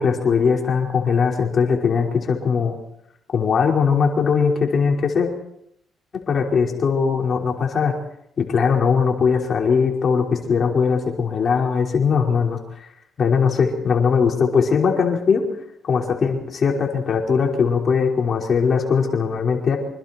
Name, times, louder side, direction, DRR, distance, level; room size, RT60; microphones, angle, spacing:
voice 1, 0.0-2.8 3.3-5.3 6.1-7.9 8.4-12.6 13.2-15.5 15.8-19.8, left 6 dB, 50° left, 0 dB, 5.0 m, -20 dB
27.5 x 26.0 x 4.6 m, 0.74 s
cardioid pair, 90°, 0 cm